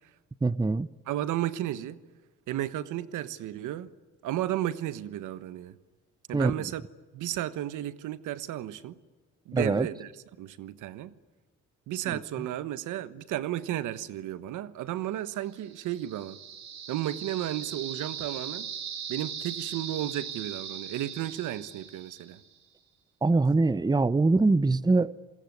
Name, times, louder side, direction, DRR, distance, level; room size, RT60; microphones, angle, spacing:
voice 1, 0.4-0.9 6.3-6.5 9.5-9.9 12.1-12.2 23.2-25.3, right 3 dB, 15° right, 0.8 m, -23 dB
voice 2, 1.1-2.0 2.5-3.9 4.2-5.8 6.3-6.8 7.1-9.0 9.5-10.1 10.4-11.1 11.9-16.4 16.9-18.7 19.1-22.4, right 13 dB, 90° right, 1.3 m, -33 dB
sound 1, 15.6-22.5, right 8 dB, 65° right, 4.8 m, -39 dB
26.0 x 21.5 x 9.5 m
cardioid pair, 90°, 30 cm